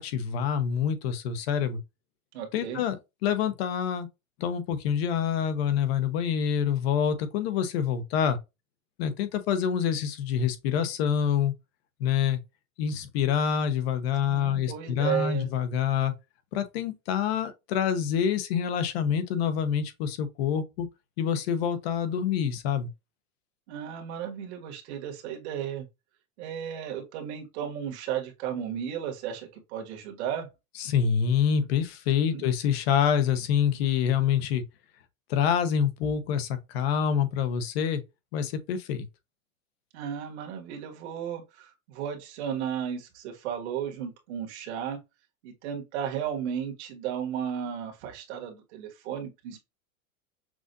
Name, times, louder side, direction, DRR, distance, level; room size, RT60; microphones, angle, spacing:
voice 1, 0.0-1.8 2.5-4.1 4.4-8.4 9.0-11.5 12.0-12.4 12.8-16.1 16.5-20.9 21.2-22.9 30.8-34.6 35.3-38.0 38.3-39.1, left 8 dB, 45° left, 0.9 m, -26 dB
voice 2, 2.3-2.8 14.2-15.5 23.7-25.9 26.4-30.5 32.2-32.4 39.9-45.0 45.4-49.6, right 9 dB, 50° right, 1.7 m, -34 dB
6.2 x 2.5 x 2.5 m
supercardioid pair, 170°, 42 cm